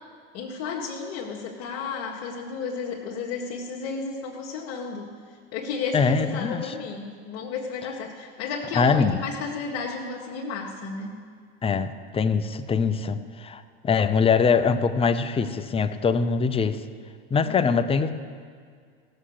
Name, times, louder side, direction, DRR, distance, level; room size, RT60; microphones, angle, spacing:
voice 1, 0.3-11.2 17.4-17.6, left 5 dB, 55° left, -3 dB, 1.6 m, -33 dB
voice 2, 5.9-6.7 8.7-9.2 11.6-16.9 17.3-18.1, left 5 dB, 20° left, 10 dB, 0.7 m, -23 dB
17.0 x 7.1 x 6.6 m, 2.1 s
hypercardioid pair, 105°, 30 cm